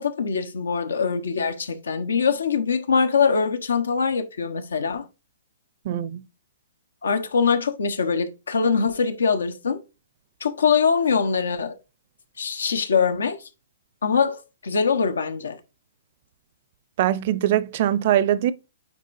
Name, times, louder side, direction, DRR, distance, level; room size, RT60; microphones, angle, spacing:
voice 1, 0.0-5.0 7.0-9.8 10.4-11.7 12.4-13.4 14.0-15.6, left 5 dB, 85° left, 1.2 m, -23 dB
voice 2, 5.8-6.2 17.0-18.5, right 12 dB, 50° right, 0.6 m, -22 dB
9.4 x 4.8 x 2.7 m
hypercardioid pair, 140°, 0 cm